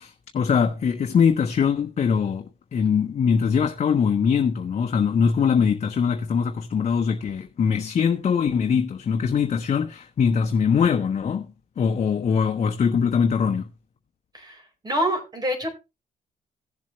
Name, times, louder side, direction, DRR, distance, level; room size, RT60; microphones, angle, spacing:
voice 1, 0.0-2.4 2.7-11.5 11.8-13.7, left 6 dB, 45° left, 1.1 m, -22 dB
voice 2, 14.3-15.7, equal, 25° right, 4.3 m, -27 dB
16.5 x 7.3 x 3.1 m
cardioid pair, 90°, 15 cm